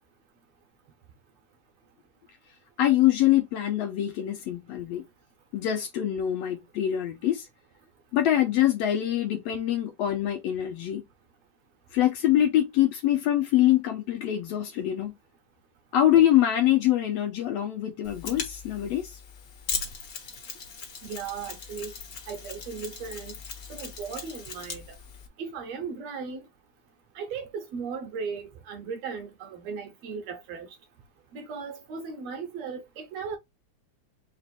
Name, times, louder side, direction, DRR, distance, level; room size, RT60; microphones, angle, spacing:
voice 1, 2.8-5.0 5.5-7.5 8.1-11.0 11.9-15.2 15.9-19.2, left 12 dB, 75° left, 1.6 m, -24 dB
Mechanisms, 18.0-25.3, left 5 dB, 60° left, 0.9 m, -39 dB
voice 2, 21.0-21.9 22.3-23.3 23.7-25.0 25.4-26.4 27.1-30.7 31.3-33.4, right 5 dB, 75° right, 1.6 m, -37 dB
4.6 x 2.5 x 4.1 m
omnidirectional pair, 3.4 m